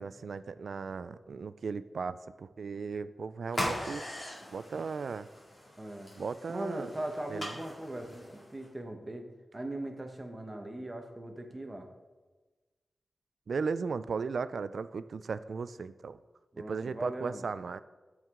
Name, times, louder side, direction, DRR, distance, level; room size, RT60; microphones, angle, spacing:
voice 1, 0.0-4.0 4.5-5.3 6.1-6.9 7.3-7.5 13.5-16.2 16.7-17.8, right 5 dB, 75° right, 14 dB, 0.3 m, -36 dB
sound 1, 3.5-8.7, left 1 dB, 30° left, 2.2 m, -40 dB
voice 2, 5.8-6.1 6.5-9.3 9.5-11.9 16.5-17.5, right 1 dB, 20° right, 4 dB, 1.0 m, -39 dB
13.5 x 4.7 x 3.7 m, 1.2 s
wide cardioid pair, 130°, 0 cm